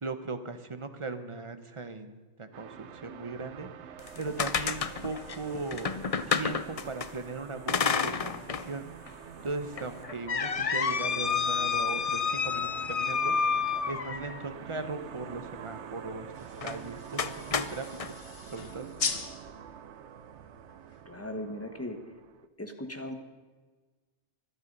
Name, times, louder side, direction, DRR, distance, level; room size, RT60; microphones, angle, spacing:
voice 1, 0.0-3.7 4.2-6.0 6.3-8.8 9.4-13.3 13.9-18.2 18.5-18.9, right 3 dB, 30° right, 9 dB, 1.0 m, -38 dB
sound 1, 2.5-22.5, right 9 dB, 80° right, 1.0 m, -46 dB
sound 2, 4.0-7.1 7.7-8.7 9.1-9.2 9.8-14.4 16.6-16.8 17.2-18.1, left 6 dB, 40° left, 0.6 m, -30 dB
sound 3, 16.3-21.2, left 5 dB, 60° left, 1.4 m, -40 dB
voice 2, 21.0-22.0 22.6-23.2, left 1 dB, 15° left, 6 dB, 1.4 m, -38 dB
24.0 x 8.8 x 5.4 m, 1.3 s
omnidirectional pair, 1.2 m